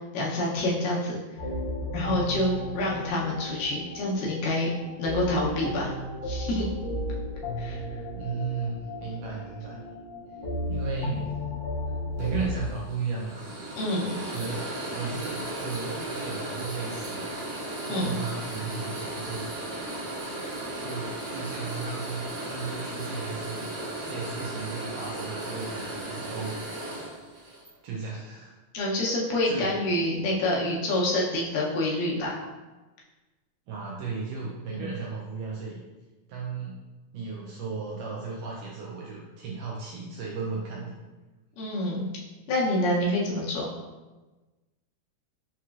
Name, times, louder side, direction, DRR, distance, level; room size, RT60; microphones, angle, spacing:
voice 1, 0.1-1.2 1.9-4.7 5.0-5.9 6.2-6.7 7.6-7.8 13.8-14.3 17.9-18.2 28.7-32.4 34.7-34.9 41.6-42.1 42.5-43.7, left 1 dB, 75° left, -5 dB, 2.2 m, -27 dB
sound 1, 1.4-12.7, left 1 dB, 60° left, 1.5 m, -34 dB
voice 2, 8.2-9.8 10.7-11.3 12.2-13.6 14.3-19.5 20.8-23.8 24.0-26.5 27.8-28.6 29.4-29.8 33.7-35.8 36.3-36.8 37.1-40.9, right 4 dB, 80° right, -3 dB, 1.9 m, -35 dB
sound 2, 12.2-27.7, right 1 dB, 60° right, 2.6 m, -36 dB
5.8 x 2.9 x 2.4 m, 1.2 s
omnidirectional pair, 4.2 m